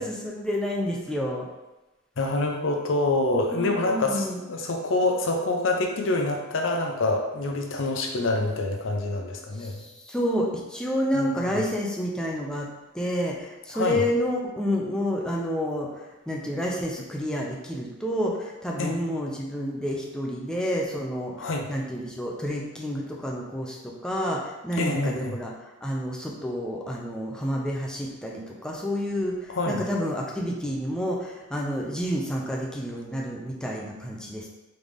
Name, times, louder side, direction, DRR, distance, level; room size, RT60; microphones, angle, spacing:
voice 1, 0.0-1.5 3.5-4.4 9.6-12.7 12.9-25.5 25.8-34.5, equal, 5° left, -3 dB, 0.5 m, -29 dB
voice 2, 2.2-9.8 11.1-11.6 13.7-14.0 18.8-18.9 21.4-21.7 24.7-25.4 29.5-29.9, left 2 dB, 90° left, 2 dB, 0.6 m, -26 dB
3.9 x 3.3 x 3.5 m, 1.0 s
head